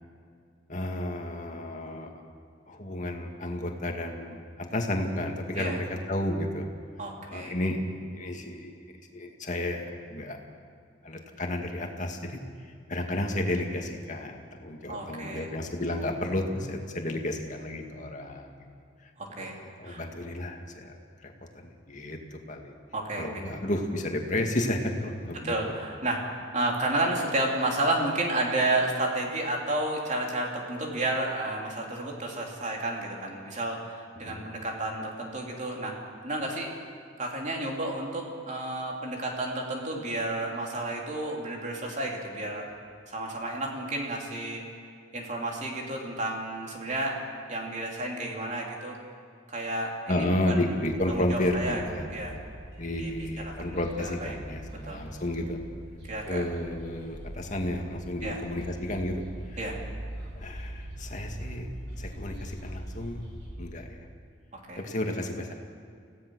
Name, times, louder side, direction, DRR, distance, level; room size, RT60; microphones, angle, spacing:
voice 1, 0.7-2.2 2.7-6.7 7.3-7.8 8.1-8.7 9.1-10.4 11.0-18.5 19.0-19.1 19.4-22.7 23.2-25.7 34.3-34.4 50.1-52.1 52.8-55.6 56.3-59.7 60.4-61.7 62.0-64.0 64.8-65.5, left 1 dB, 40° left, 2 dB, 2.1 m, -32 dB
voice 2, 7.0-7.5 14.9-15.5 19.2-19.5 19.8-20.1 22.9-23.4 25.4-35.9 36.2-36.7 37.2-42.6 43.1-44.6 45.1-47.2 47.5-49.0 49.5-50.7 51.1-51.8 52.1-52.3 53.0-53.1 53.4-54.3 54.9-55.0 56.1-56.4 58.2-58.4 59.6-59.8 64.7-64.8, right 2 dB, 35° right, 0 dB, 3.1 m, -31 dB
sound 1, 50.8-63.5, right 1 dB, 65° right, 6.5 m, -42 dB
25.5 x 17.0 x 6.4 m, 2.2 s
head